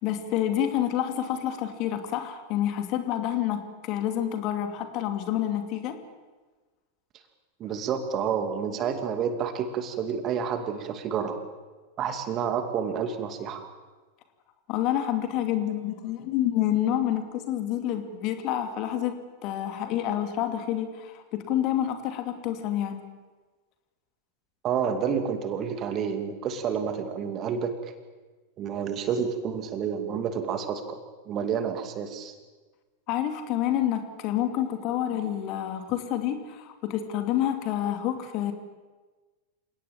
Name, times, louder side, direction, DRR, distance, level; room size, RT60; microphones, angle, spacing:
voice 1, 0.0-6.0 14.7-19.2 19.4-23.0 33.1-38.5, left 11 dB, 40° left, 7 dB, 2.6 m, -28 dB
voice 2, 7.6-11.4 12.0-13.7 24.6-27.7 28.6-31.0 31.3-32.3, right 7 dB, 30° right, 8 dB, 2.5 m, -29 dB
29.0 x 18.0 x 7.4 m, 1.3 s
figure-of-eight pair, 90°, 0 cm